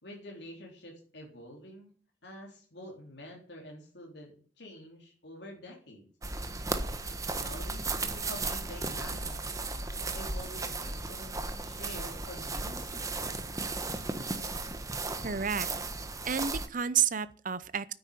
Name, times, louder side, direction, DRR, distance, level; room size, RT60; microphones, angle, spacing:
voice 1, 0.0-1.9 2.2-6.1 7.3-9.4 10.1-11.4 11.6-13.1, left 1 dB, 60° left, 3.9 m, -47 dB
sound 1, 6.2-16.7, right 3 dB, 20° right, 1.2 m, -35 dB
voice 2, 15.2-15.7 16.3-17.9, right 8 dB, 45° right, 0.8 m, -30 dB
9.8 x 9.2 x 8.7 m
head